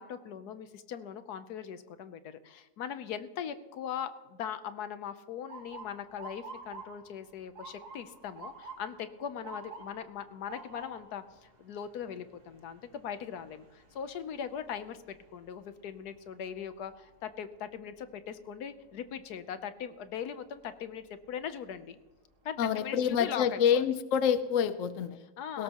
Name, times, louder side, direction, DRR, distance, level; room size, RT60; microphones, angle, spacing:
voice 1, 0.0-11.2 11.6-22.0 22.4-23.8 25.4-25.6, left 8 dB, 80° left, 11 dB, 1.3 m, -40 dB
Motor vehicle (road) / Siren, 5.5-17.4 17.8-18.3 19.1-19.4 21.2-21.5 22.0-22.1 22.5-23.2, right 4 dB, 85° right, 2.8 m, -50 dB
voice 2, 22.6-25.2 25.5-25.6, left 8 dB, 60° left, 12 dB, 1.0 m, -27 dB
18.5 x 16.5 x 3.0 m, 1.2 s
omnidirectional pair, 1.7 m